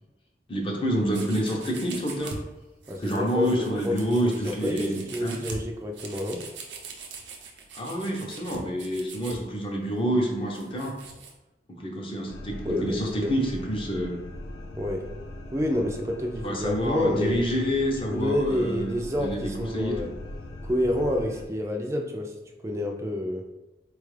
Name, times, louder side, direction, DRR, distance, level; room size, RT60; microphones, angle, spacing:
voice 1, 0.5-2.3 3.0-5.4 7.7-10.9 11.7-14.2 16.4-20.1, equal, 30° left, -1 dB, 0.6 m, -28 dB
sound 1, 1.1-2.4 2.8-9.4 10.0-11.3, right 5 dB, 85° right, 0.6 m, -42 dB
voice 2, 2.9-6.4 12.6-13.3 14.8-15.1 15.5-17.4 18.1-20.1 20.6-22.3 22.6-23.4, left 1 dB, 15° right, 2 dB, 0.3 m, -28 dB
sound 2, 12.3-21.4, left 1 dB, 80° left, 0.4 m, -40 dB
4.3 x 2.3 x 3.2 m, 1.0 s
head